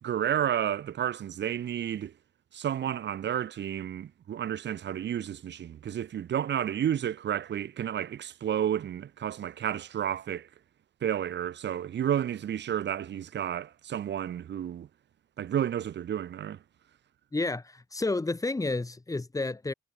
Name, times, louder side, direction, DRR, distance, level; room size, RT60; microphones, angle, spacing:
voice 1, 0.0-2.1 2.5-10.5 11.0-14.9 15.4-16.6, right 10 dB, 60° right, 2.5 m, -31 dB
voice 2, 17.3-19.7, left 2 dB, 15° left, 2.7 m, -30 dB
cardioid pair, 90°, 20 cm